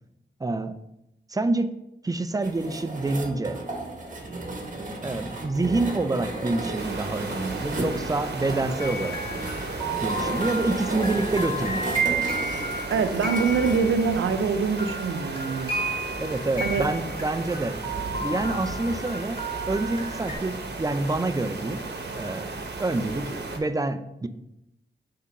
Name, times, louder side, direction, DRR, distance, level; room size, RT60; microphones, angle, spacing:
voice 1, 0.4-0.8 1.3-1.7 2.0-3.6 5.0-9.2 10.0-12.1 16.2-17.8 18.2-19.4 19.7-21.8 22.2-24.3, right 2 dB, 20° right, 11 dB, 0.5 m, -27 dB
sound 1, 2.4-13.8, right 2 dB, 40° right, 1.4 m, -34 dB
sound 2, 6.7-23.6, right 3 dB, 55° right, 1.1 m, -35 dB
sound 3, 8.8-14.5 14.8-20.4, right 2 dB, 25° left, 2.6 m, -32 dB
voice 2, 12.9-15.8 16.6-16.8, right 5 dB, 90° right, 8 dB, 0.6 m, -24 dB
5.7 x 3.7 x 5.6 m, 0.86 s
cardioid pair, 55°, 20 cm